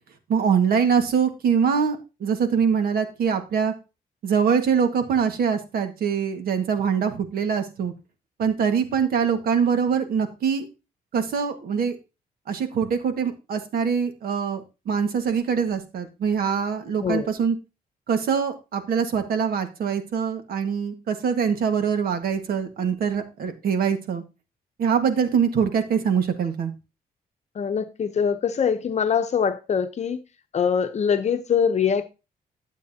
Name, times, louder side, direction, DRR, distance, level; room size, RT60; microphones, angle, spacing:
voice 1, 0.3-3.7 4.2-7.9 8.4-10.7 11.1-12.0 12.5-17.5 18.1-24.2 24.8-26.7, right 6 dB, 80° right, 1.7 m, -23 dB
voice 2, 27.5-30.2 30.5-32.0, left 7 dB, 50° left, 0.8 m, -23 dB
12.0 x 7.4 x 2.8 m
cardioid pair, 110°, 15 cm